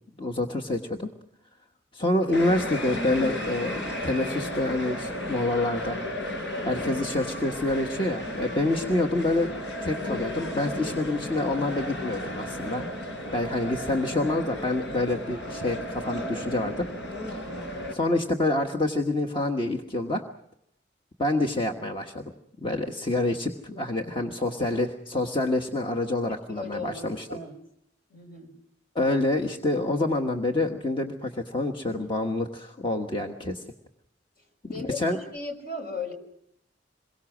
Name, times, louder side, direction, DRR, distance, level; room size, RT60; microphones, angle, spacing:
voice 1, 0.2-1.1 1.9-6.0 6.6-9.5 9.8-12.9 13.3-16.9 17.9-20.2 21.2-22.3 22.6-27.3 28.9-33.6 34.6-35.2, left 2 dB, 30° left, 3 dB, 1.4 m, -27 dB
sound 1, 2.3-17.9, left 1 dB, 80° left, 4.6 m, -34 dB
voice 2, 26.3-27.6 28.1-28.5 34.6-36.1, left 3 dB, 55° left, 5 dB, 5.5 m, -37 dB
27.5 x 22.5 x 6.2 m, 0.75 s
head